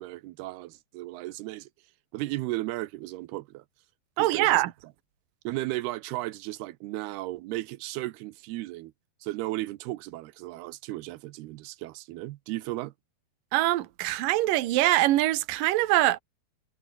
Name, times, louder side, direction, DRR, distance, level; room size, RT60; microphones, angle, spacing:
voice 1, 0.0-1.7 2.1-3.6 4.2-4.6 5.4-8.9 9.2-12.9, right 18 dB, 85° right, 2.8 m, -35 dB
voice 2, 4.2-4.7 13.5-16.2, right 16 dB, 65° right, 2.6 m, -23 dB
omnidirectional pair, 4.6 m